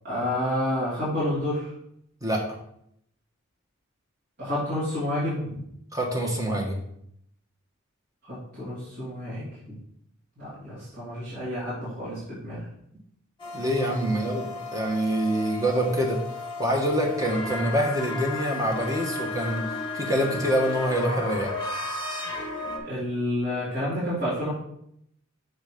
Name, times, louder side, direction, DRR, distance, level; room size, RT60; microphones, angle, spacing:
voice 1, 0.0-1.7 4.4-5.6 8.2-9.4 10.4-12.6 14.0-14.2 22.8-24.5, left 1 dB, 50° right, -10 dB, 2.7 m, -29 dB
voice 2, 5.9-6.8 13.5-14.4 14.7-16.2 16.6-19.6 19.9-21.5, right 1 dB, 15° right, 0 dB, 1.1 m, -25 dB
sound 1, 13.4-22.8, left 3 dB, 25° left, 1.0 m, -34 dB
6.4 x 4.1 x 5.0 m, 0.73 s
head